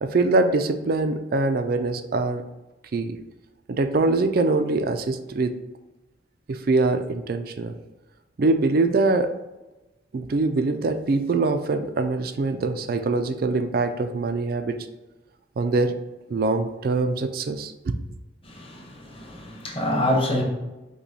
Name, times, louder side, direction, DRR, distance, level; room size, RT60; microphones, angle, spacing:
voice 1, 0.0-2.4 2.9-3.2 3.7-5.6 6.5-7.7 8.4-9.3 10.1-14.8 15.6-15.9 16.3-18.0, right 3 dB, 50° right, 8 dB, 0.4 m, -23 dB
voice 2, 18.4-20.4, left 1 dB, 30° left, -1 dB, 0.9 m, -26 dB
5.6 x 2.2 x 4.1 m, 1.1 s
head